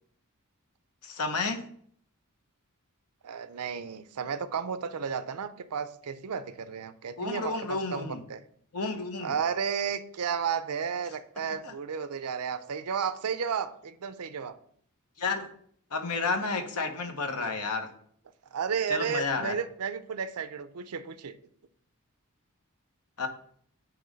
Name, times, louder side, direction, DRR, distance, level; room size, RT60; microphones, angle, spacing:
voice 1, 1.0-1.6 7.2-8.2 8.7-9.4 11.6-11.7 15.2-15.5 15.9-17.9 18.9-19.6 23.2-23.3, left 4 dB, 85° left, 6 dB, 1.0 m, -31 dB
voice 2, 3.2-8.4 9.2-14.6 18.5-21.4, right 6 dB, 85° right, 13 dB, 0.5 m, -33 dB
8.7 x 3.1 x 5.2 m, 0.62 s
head